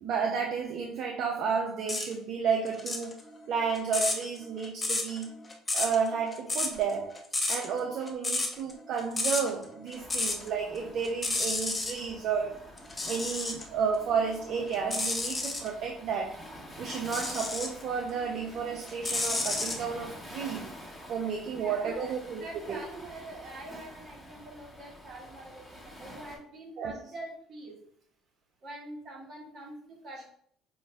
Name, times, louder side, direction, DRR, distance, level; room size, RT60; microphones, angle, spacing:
voice 1, 0.0-3.2 3.5-5.4 5.7-12.6 13.0-16.4 16.8-20.7 21.1-22.8 26.8-26.9, right 6 dB, 65° right, 2 dB, 0.4 m, -32 dB
sound 1, 1.9-2.1 2.7-10.5 10.8-12.0 12.8-13.6 14.2-15.7 17.0-17.8 18.3-19.8, left 2 dB, 20° left, 0.8 m, -31 dB
Waves surf, 9.9-26.4, equal, 5° right, 1.2 m, -47 dB
voice 2, 21.5-27.8 28.6-30.3, right 1 dB, 50° right, -1 dB, 1.3 m, -45 dB
5.1 x 2.4 x 2.3 m, 0.63 s
supercardioid pair, 85°, 0 cm